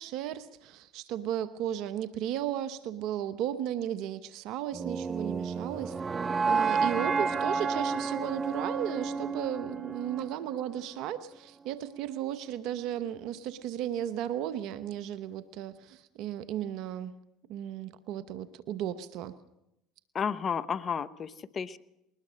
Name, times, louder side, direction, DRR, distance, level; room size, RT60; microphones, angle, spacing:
voice 1, 0.0-6.0 6.5-17.1 17.5-19.4, right 11 dB, 65° right, 13 dB, 1.0 m, -35 dB
sound 1, 4.7-10.8, right 5 dB, 25° right, 0.7 m, -31 dB
voice 2, 20.1-21.8, left 7 dB, 35° left, 16 dB, 0.9 m, -32 dB
21.0 x 19.5 x 6.3 m, 0.84 s
hypercardioid pair, 85°, 0 cm